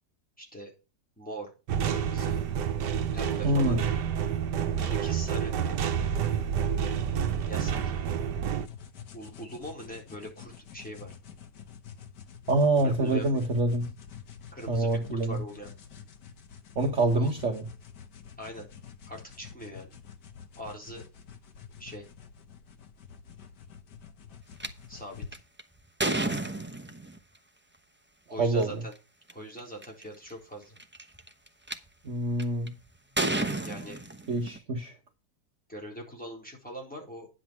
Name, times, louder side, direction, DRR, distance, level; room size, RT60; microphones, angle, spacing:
voice 1, 0.4-0.7 1.2-1.5 1.9-2.4 3.1-3.9 4.7-5.5 7.5-8.1 9.1-11.1 12.8-13.3 14.5-15.7 17.1-17.3 18.4-18.7 19.1-20.0 20.5-21.0 21.8-22.1 24.9-25.4 28.3-28.9 29.3-30.8 33.6-34.0 35.7-37.3, equal, 5° left, 4.0 m, -42 dB
sound 1, 1.7-8.7, right 8 dB, 80° right, 1.4 m, -29 dB
voice 2, 3.4-3.9 12.5-13.9 14.7-15.4 16.7-17.7 28.4-28.8 32.0-32.7 34.3-34.9, right 2 dB, 45° right, 1.6 m, -26 dB
sound 2, 8.6-25.3, left 7 dB, 80° left, 1.8 m, -48 dB
sound 3, 24.6-24.7 25.3-27.2 28.4-28.6 29.3-29.4 29.6-30.0 30.8-31.7 32.4-32.7 33.2-34.6, right 2 dB, 10° right, 0.6 m, -31 dB
10.0 x 7.7 x 4.6 m
omnidirectional pair, 1.8 m